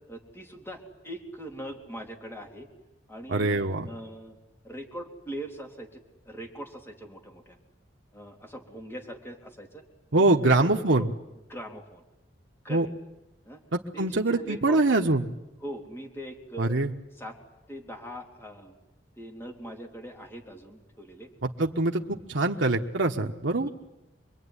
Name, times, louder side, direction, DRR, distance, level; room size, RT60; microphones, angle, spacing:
voice 1, 0.1-2.7 3.1-4.4 4.6-6.0 6.3-7.6 8.1-9.8 10.1-11.1 11.5-12.0 12.6-12.9 13.4-13.6 13.9-15.1 15.6-16.8 17.2-17.4 17.7-18.7 19.2-21.3 23.2-23.7, right 1 dB, 10° left, 2 dB, 3.5 m, -41 dB
voice 2, 3.3-3.9 10.1-11.1 12.7-12.9 13.7-15.3 16.6-16.9 21.4-23.7, right 2 dB, 70° right, 1 dB, 1.3 m, -24 dB
26.5 x 22.0 x 9.9 m, 0.94 s
head